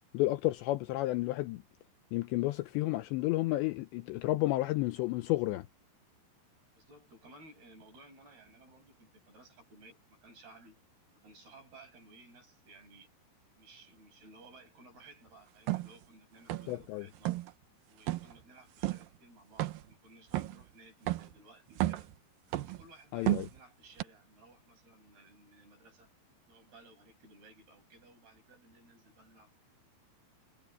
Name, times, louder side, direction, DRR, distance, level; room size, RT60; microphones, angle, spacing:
voice 1, 0.0-1.6 2.1-5.7 16.7-17.1 23.1-23.5, left 18 dB, 80° left, 2.7 m, -31 dB
voice 2, 6.7-10.8 11.1-13.1 13.6-17.3 17.9-22.1 22.6-26.1 26.5-29.5, right 2 dB, 50° right, 10.0 m, -58 dB
sound 1, 15.7-15.9 16.5-16.9 17.2-17.5 18.1-18.3 18.8-19.1 19.6-19.9 20.3-20.6 21.1-21.3 21.7-22.1 22.5-22.9 23.3-23.6 24.0-24.1, right 17 dB, 90° right, 2.0 m, -32 dB
omnidirectional pair, 5.6 m